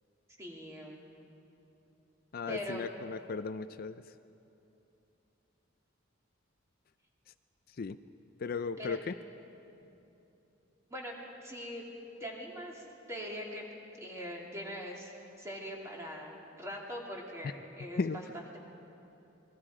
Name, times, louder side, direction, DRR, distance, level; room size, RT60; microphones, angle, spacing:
voice 1, 0.4-1.0 2.5-2.8 8.8-9.0 10.9-11.1 11.4-11.8 12.2-13.7 14.0-18.6, equal, 15° right, -2 dB, 2.8 m, -42 dB
voice 2, 2.3-3.9 7.8-8.0 8.4-9.0 18.0-18.2, left 4 dB, 50° left, 11 dB, 0.4 m, -35 dB
27.5 x 21.0 x 4.9 m, 2.9 s
head